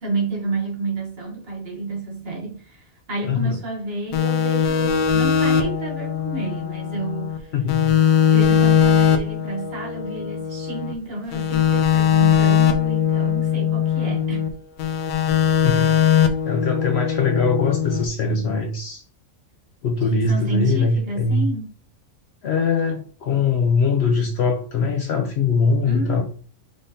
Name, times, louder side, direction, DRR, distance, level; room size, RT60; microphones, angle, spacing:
voice 1, 0.0-7.5 7.9-14.5 20.0-21.7 25.8-26.2, right 2 dB, 50° right, 1.2 m, -30 dB
voice 2, 3.2-3.6 7.5-7.9 15.6-15.9 16.5-19.0 19.8-21.5 22.4-26.2, left 4 dB, 60° left, 0.7 m, -21 dB
sound 1, 4.1-7.4 7.7-10.9 11.3-14.5 14.8-18.1, left 8 dB, 80° left, 1.1 m, -20 dB
4.9 x 3.7 x 2.6 m
omnidirectional pair, 1.4 m